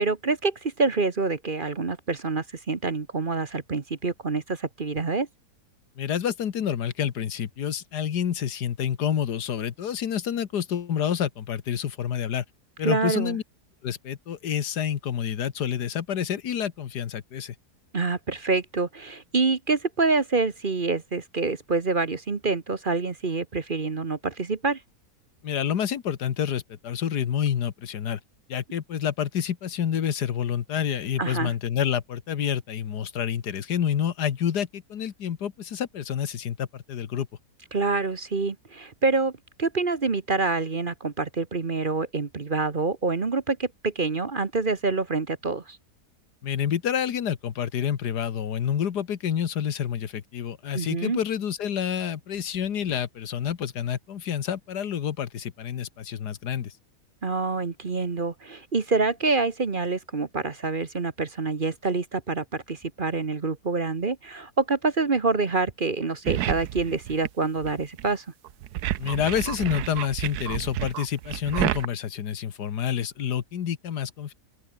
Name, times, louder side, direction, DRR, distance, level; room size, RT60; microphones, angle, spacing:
voice 1, 0.0-5.3 12.8-13.4 17.9-24.8 31.2-31.5 37.7-39.3 39.6-45.8 50.7-51.2 57.2-68.2, right 3 dB, 35° right, 1.3 m, -26 dB
voice 2, 6.0-12.4 12.8-13.4 13.8-17.6 25.4-28.2 28.5-37.3 46.4-56.7 69.0-74.3, left 9 dB, 85° left, 1.8 m, -28 dB
sound 1, 66.3-67.3 67.6-68.1 68.4-71.9, right 13 dB, 75° right, 1.2 m, -30 dB
open air
omnidirectional pair, 1.7 m